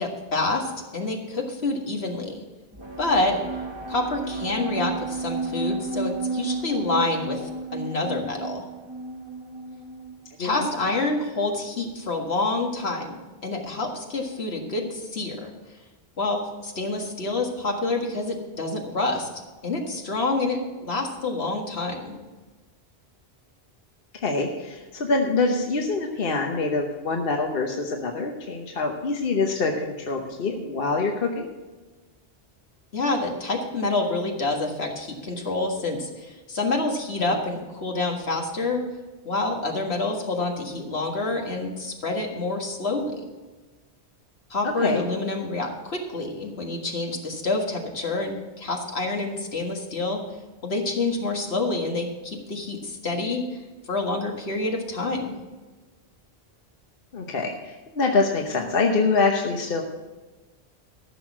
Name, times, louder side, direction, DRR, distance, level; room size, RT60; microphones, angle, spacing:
voice 1, 0.0-2.4 3.0-3.4 3.9-8.7 10.4-15.5 16.2-19.3 19.6-22.2 32.9-38.8 39.3-43.3 44.5-50.2 50.6-53.6 53.9-55.4, left 2 dB, 80° left, 1 dB, 2.0 m, -27 dB
sound 1, 2.7-10.3, right 3 dB, 25° right, 1.1 m, -32 dB
voice 2, 24.1-31.5 37.2-37.3 44.6-45.0 57.1-59.8, left 3 dB, 60° left, 2 dB, 1.2 m, -25 dB
14.5 x 6.3 x 6.0 m, 1.2 s
omnidirectional pair, 1.1 m